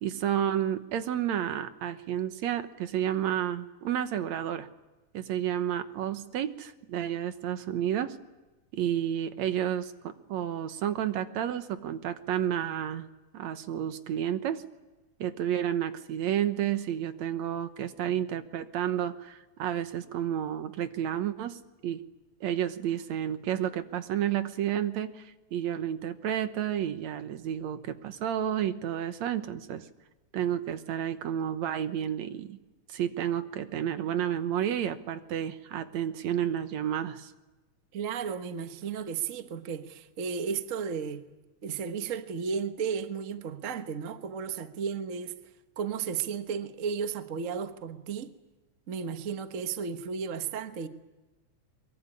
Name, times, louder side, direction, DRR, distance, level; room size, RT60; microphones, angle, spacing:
voice 1, 0.0-4.7 5.1-8.2 8.7-13.1 13.3-14.6 15.2-22.0 22.4-29.9 30.3-32.6 32.9-37.3, right 10 dB, 70° right, 2.3 m, -31 dB
voice 2, 37.9-41.2 41.6-45.4 45.8-48.3 48.9-50.9, right 6 dB, 55° right, 0.8 m, -34 dB
23.0 x 22.5 x 9.9 m
omnidirectional pair, 3.4 m